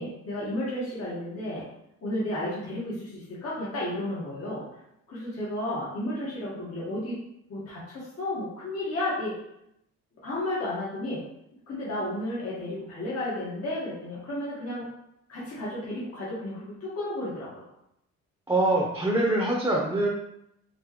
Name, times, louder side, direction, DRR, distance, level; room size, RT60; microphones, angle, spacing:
voice 1, 0.0-1.7 2.0-4.8 5.1-9.4 10.2-11.3 11.7-14.9 15.3-17.7, left 1 dB, 50° left, -8 dB, 1.7 m, -33 dB
voice 2, 18.5-20.1, right 2 dB, 10° right, -2 dB, 0.9 m, -24 dB
5.1 x 3.2 x 3.1 m, 0.80 s
cardioid pair, 90°, 30 cm